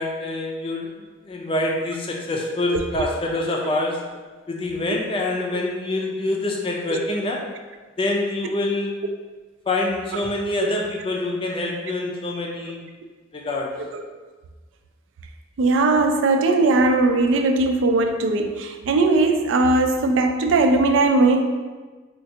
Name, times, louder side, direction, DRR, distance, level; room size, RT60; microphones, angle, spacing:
voice 1, 0.0-4.1 4.5-7.5 8.0-9.0 9.7-12.9 13.3-13.8, left 2 dB, 30° left, 0 dB, 0.4 m, -26 dB
voice 2, 15.6-21.5, right 2 dB, 85° right, 5 dB, 0.3 m, -19 dB
4.4 x 2.3 x 2.7 m, 1.3 s
head